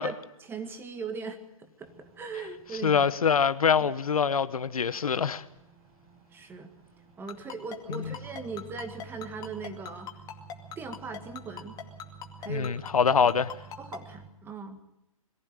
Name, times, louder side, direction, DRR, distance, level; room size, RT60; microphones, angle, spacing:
voice 1, 0.0-3.1 6.3-6.7 7.2-10.1 10.8-11.8 12.4-12.8 13.2-13.3 13.8-14.8, right 4 dB, 10° right, 1.8 m, -39 dB
sound 1, 1.8-14.3, right 5 dB, 30° right, 3.8 m, -51 dB
voice 2, 2.8-5.4 7.9-8.1 12.5-13.5, left 6 dB, 85° left, 1.1 m, -25 dB
Ringtone, 7.3-14.0, left 9 dB, 20° left, 2.3 m, -39 dB
22.5 x 14.5 x 8.9 m
hypercardioid pair, 140°, 18 cm